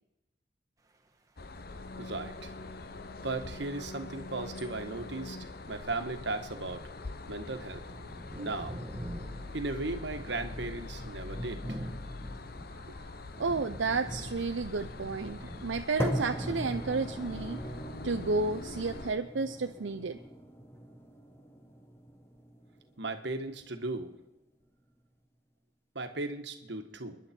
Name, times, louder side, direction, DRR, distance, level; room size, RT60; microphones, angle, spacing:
sound 1, 1.4-19.1, left 2 dB, 50° left, 0.8 m, -44 dB
voice 1, 2.0-2.5 3.2-6.8 7.3-7.8 8.4-8.8 9.5-11.9 23.0-24.1 25.9-27.2, right 2 dB, 65° right, 7 dB, 1.5 m, -36 dB
sound 2, 5.9-6.0 6.4-6.5 7.1-16.1, equal, 20° right, 1.4 m, -44 dB
voice 2, 13.4-17.6 18.0-20.2, right 4 dB, 80° right, 7 dB, 0.7 m, -32 dB
sound 3, 16.0-24.0, equal, 15° left, 1.4 m, -39 dB
29.5 x 11.0 x 4.5 m, 0.99 s
head